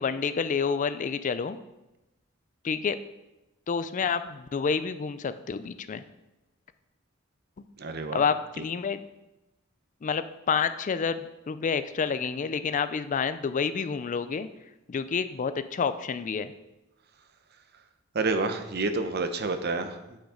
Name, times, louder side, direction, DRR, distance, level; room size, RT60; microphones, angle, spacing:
voice 1, 0.0-1.6 2.6-3.0 3.7-6.0 8.1-9.0 10.0-14.5 14.9-16.5, left 6 dB, 40° left, 12 dB, 0.4 m, -29 dB
voice 2, 7.8-8.2 8.6-8.7 18.1-20.2, right 3 dB, 50° right, 8 dB, 0.7 m, -29 dB
8.7 x 6.2 x 4.9 m, 0.97 s
head